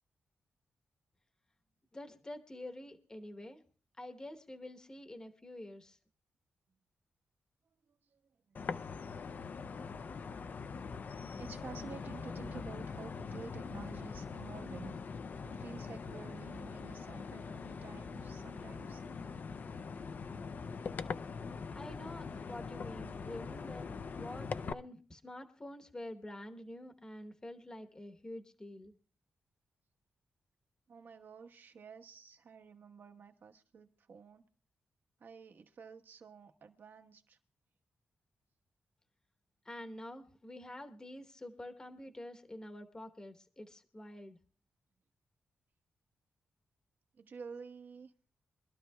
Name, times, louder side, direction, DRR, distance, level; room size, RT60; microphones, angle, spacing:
voice 1, 1.9-3.6 4.0-6.0 21.7-28.9 39.6-44.4, left 1 dB, 15° left, 5 dB, 1.0 m, -47 dB
voice 2, 7.9-8.2 8.5-8.6 11.4-15.0 15.4-19.0 30.9-34.4 35.2-37.4 47.1-48.1, right 5 dB, 55° right, 5 dB, 1.2 m, -51 dB
sound 1, 8.6-24.7, left 5 dB, 45° left, 0.5 m, -42 dB
24.5 x 12.5 x 2.3 m, 0.42 s
wide cardioid pair, 125°, 4 cm